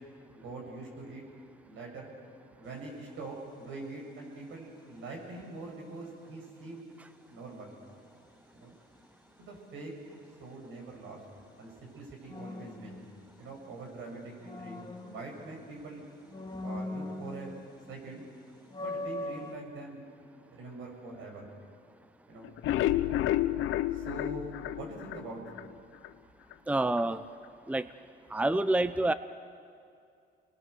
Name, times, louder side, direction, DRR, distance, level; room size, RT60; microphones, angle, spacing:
voice 1, 0.3-1.2 1.7-2.1 2.6-6.9 7.3-7.8 8.5-8.7 9.4-9.9 10.4-11.2 11.6-13.0 13.4-16.1 16.6-17.6 17.9-18.3 18.8-20.0 20.5-21.5 22.3-22.5 23.9-25.4, right 3 dB, 80° right, 0 dB, 7.4 m, -44 dB
sound 1, 2.6-3.0 12.3-13.7 14.1-15.8 16.3-17.9 18.2-18.3 18.7-19.6, left 2 dB, 20° left, 2.5 m, -40 dB
sound 2, 22.4-25.7 26.0-26.1 26.5-26.6 27.0-27.1, left 14 dB, 85° left, 0.7 m, -30 dB
voice 2, 26.7-27.2 27.7-27.8 28.3-29.1, right 2 dB, 5° right, 13 dB, 0.7 m, -27 dB
28.5 x 22.5 x 6.9 m, 2.4 s
cardioid pair, 90°, 20 cm